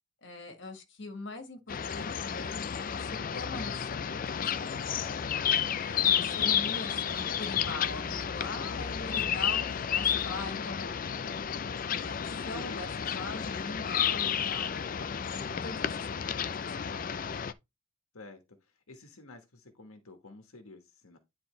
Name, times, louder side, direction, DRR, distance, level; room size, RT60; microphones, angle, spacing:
voice 1, 0.2-5.0 5.7-11.2 12.0-12.9 13.2-17.4, left 3 dB, 55° left, 1.7 m, -43 dB
sound 1, 1.7-17.5, left 8 dB, 40° left, 0.4 m, -31 dB
voice 2, 13.2-13.5 18.1-18.4 18.9-21.2, left 2 dB, 85° left, 1.3 m, -50 dB
10.0 x 4.2 x 3.2 m
head